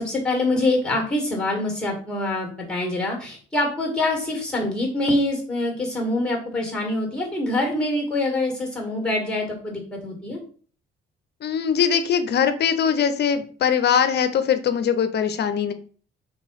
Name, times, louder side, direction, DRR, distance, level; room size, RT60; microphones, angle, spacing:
voice 1, 0.0-10.4, left 2 dB, 5° left, 1 dB, 1.8 m, -25 dB
voice 2, 11.4-15.7, left 7 dB, 55° left, 11 dB, 0.6 m, -21 dB
3.5 x 2.9 x 4.6 m, 0.43 s
cardioid pair, 90°, 20 cm